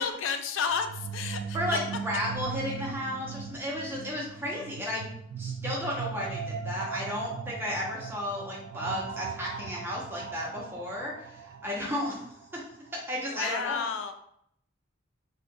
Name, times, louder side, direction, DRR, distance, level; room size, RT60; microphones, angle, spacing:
voice 1, 0.0-1.8 13.3-14.1, left 6 dB, 75° left, 8 dB, 0.3 m, -31 dB
sound 1, 0.7-12.6, right 6 dB, 80° right, 0.3 m, -38 dB
voice 2, 1.5-5.0 5.4-12.2 12.5-12.6 13.1-13.8, left 1 dB, 10° right, -4 dB, 0.8 m, -33 dB
2.7 x 2.4 x 3.7 m, 0.71 s
head